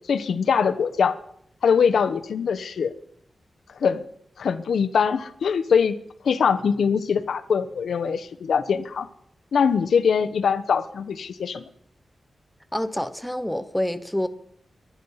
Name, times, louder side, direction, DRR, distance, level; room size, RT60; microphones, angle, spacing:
voice 1, 0.1-1.2 1.6-2.9 3.8-4.0 4.4-5.9 6.2-9.1 9.5-11.6, left 6 dB, 90° left, 0.9 m, -22 dB
voice 2, 12.7-14.3, left 1 dB, 5° left, 0.8 m, -27 dB
22.5 x 9.5 x 5.7 m
wide cardioid pair, 165°, 0 cm